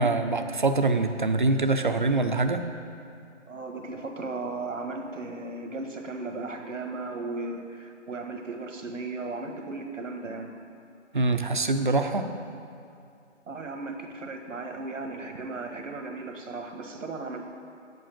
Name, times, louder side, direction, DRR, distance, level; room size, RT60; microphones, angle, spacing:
voice 1, 0.0-2.6 11.1-12.3, right 3 dB, 40° right, 8 dB, 0.5 m, -24 dB
voice 2, 3.5-10.5 13.5-17.4, right 3 dB, 85° right, 4 dB, 1.5 m, -36 dB
7.8 x 7.6 x 7.4 m, 2.5 s
hypercardioid pair, 180°, 37 cm